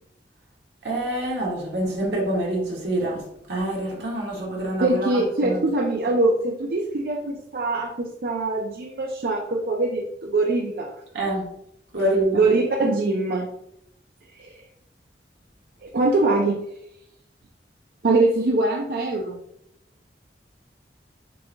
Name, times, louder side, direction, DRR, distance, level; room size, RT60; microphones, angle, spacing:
voice 1, 0.8-3.2 3.5-5.6 11.1-11.5 11.9-12.5, right 1 dB, 85° right, -3 dB, 1.4 m, -26 dB
voice 2, 4.8-10.9 12.0-12.1 12.3-13.5 14.4-14.5 15.8-16.6 18.0-19.4, right 2 dB, 55° right, 0 dB, 0.5 m, -23 dB
6.8 x 2.8 x 2.2 m, 0.75 s
head